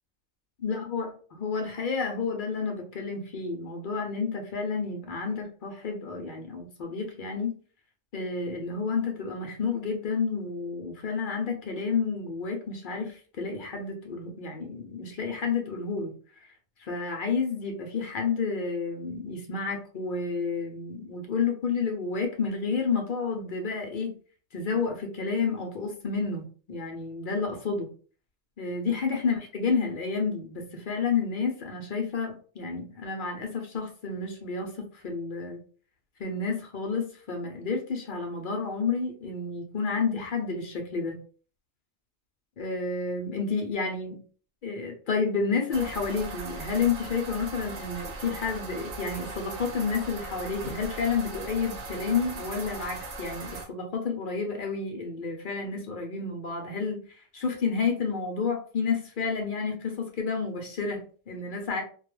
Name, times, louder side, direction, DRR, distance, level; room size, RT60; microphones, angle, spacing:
voice 1, 0.6-1.1 1.4-7.5 8.1-16.1 16.8-24.1 24.5-27.9 28.6-35.6 36.2-41.2 42.6-44.2 44.6-61.8, left 5 dB, 55° left, 3 dB, 0.6 m, -30 dB
sound 1, 45.7-53.6, right 3 dB, 65° right, 0.9 m, -39 dB
2.2 x 2.2 x 3.0 m, 0.40 s
omnidirectional pair, 1.3 m